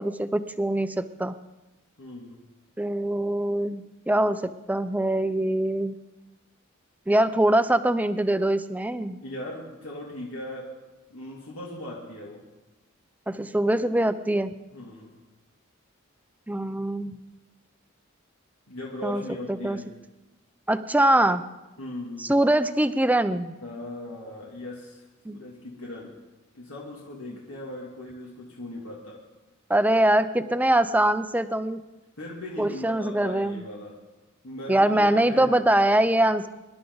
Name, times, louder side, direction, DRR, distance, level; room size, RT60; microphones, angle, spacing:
voice 1, 0.0-1.3 2.8-5.9 7.1-9.2 13.3-14.5 16.5-17.2 19.0-19.2 19.5-19.8 20.7-21.4 22.2-23.5 25.3-25.4 29.7-31.8 32.6-33.6 34.7-36.5, right 1 dB, 10° right, 11 dB, 0.5 m, -23 dB
voice 2, 2.0-2.4 9.2-10.7 11.1-12.4 14.7-15.1 18.7-19.8 21.8-22.3 23.6-26.1 26.5-29.2 32.2-33.9 34.4-35.9, left 1 dB, 90° left, -4 dB, 2.7 m, -39 dB
24.5 x 11.5 x 4.0 m, 1.1 s
head